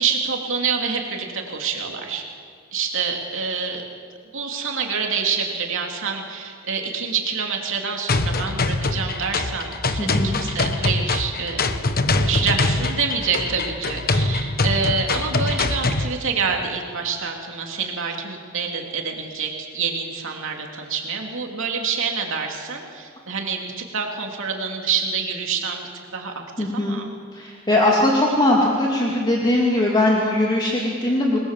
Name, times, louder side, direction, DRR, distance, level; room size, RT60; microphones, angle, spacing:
voice 1, 0.0-2.2 2.7-3.8 4.3-11.7 12.2-27.1, right 5 dB, 65° right, 1 dB, 2.9 m, -27 dB
sound 1, 8.1-16.1, left 2 dB, 45° left, 1.2 m, -23 dB
voice 2, 10.0-10.4 26.6-27.0 27.3-31.4, left 1 dB, 20° left, -3 dB, 2.7 m, -20 dB
27.5 x 21.0 x 7.5 m, 2.1 s
head